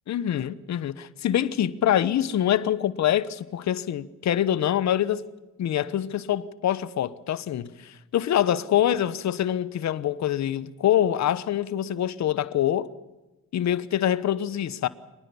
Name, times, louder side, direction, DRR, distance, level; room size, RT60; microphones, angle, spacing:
voice 1, 0.1-5.2 5.6-12.9 13.5-14.9, left 11 dB, 65° left, 1.1 m, -25 dB
24.5 x 20.0 x 7.1 m
cardioid pair, 90°, 30 cm